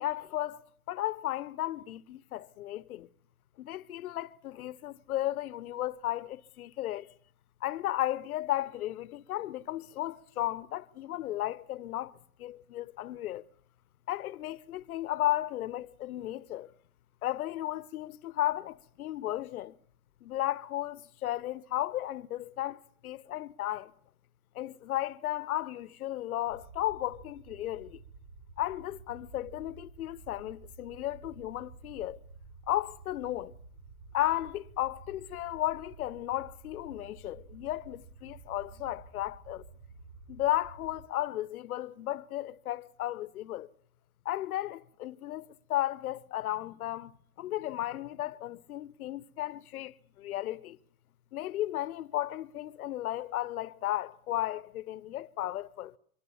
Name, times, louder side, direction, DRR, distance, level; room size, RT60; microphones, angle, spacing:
voice 1, 0.0-3.1 3.6-7.1 7.6-12.1 12.4-13.4 14.1-16.7 17.2-19.7 20.2-23.9 24.5-28.0 28.6-32.2 32.7-33.5 34.1-39.6 40.3-43.7 44.2-50.8 51.3-56.0, left 14 dB, 80° left, 0.9 m, -34 dB
sound 1, 26.5-41.1, right 4 dB, 55° right, 2.1 m, -52 dB
25.0 x 24.0 x 7.1 m
hypercardioid pair, 95°, 42 cm